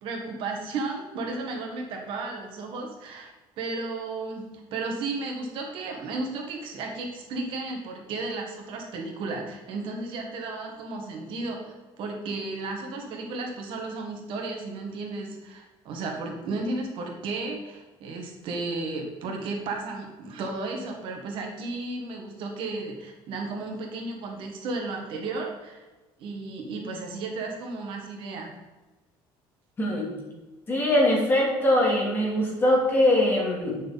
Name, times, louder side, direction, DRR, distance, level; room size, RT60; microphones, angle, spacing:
voice 1, 0.0-25.9 26.2-28.5, right 3 dB, 65° right, 1 dB, 1.8 m, -34 dB
voice 2, 29.8-30.1 30.7-33.8, left 1 dB, 20° left, -2 dB, 2.5 m, -22 dB
9.4 x 6.3 x 4.2 m, 1.2 s
cardioid pair, 155°, 9 cm